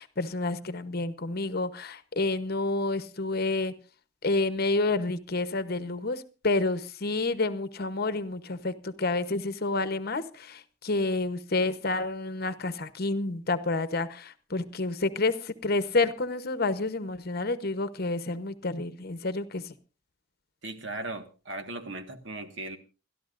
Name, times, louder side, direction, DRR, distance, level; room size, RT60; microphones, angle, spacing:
voice 1, 0.0-3.7 4.2-19.7, left 3 dB, 50° left, 13 dB, 1.0 m, -29 dB
voice 2, 20.6-22.8, right 2 dB, 60° right, 7 dB, 1.6 m, -37 dB
29.0 x 12.5 x 2.5 m, 0.33 s
head